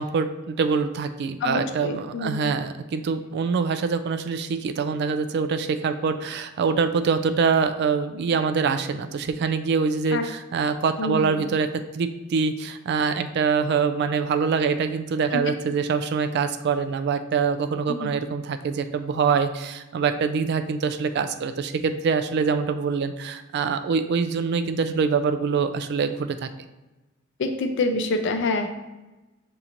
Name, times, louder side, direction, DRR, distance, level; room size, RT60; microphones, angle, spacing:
voice 1, 0.0-11.7 11.9-26.5, right 5 dB, 55° right, 9 dB, 0.3 m, -24 dB
voice 2, 1.4-2.5 10.1-10.2 11.0-11.4 15.3-15.4 17.9-18.1 27.4-28.7, left 2 dB, 60° left, 6 dB, 0.5 m, -26 dB
6.9 x 2.9 x 2.5 m, 1.1 s
head